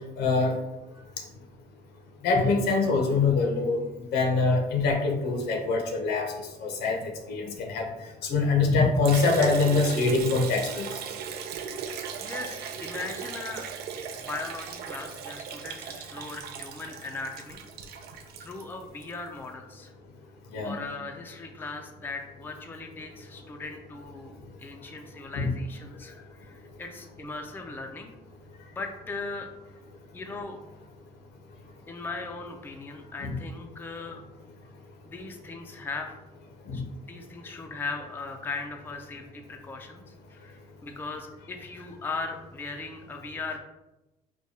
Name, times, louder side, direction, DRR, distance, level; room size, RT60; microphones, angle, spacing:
voice 1, 0.2-0.6 2.2-3.8 4.1-7.9 8.2-10.9 20.5-20.8 25.3-25.5 33.2-33.3 36.7-36.8, left 3 dB, 80° left, 2 dB, 0.8 m, -24 dB
Liquid, 9.0-19.1, right 7 dB, 70° right, 0.4 m, -38 dB
voice 2, 12.2-13.7 14.1-17.6 18.4-19.9 20.6-28.1 28.7-29.5 30.1-30.6 31.9-34.2 35.0-36.1 36.7-36.8 37.1-43.6, left 3 dB, 10° left, 3 dB, 0.4 m, -38 dB
4.5 x 2.2 x 2.8 m, 0.98 s
cardioid pair, 110°, 17 cm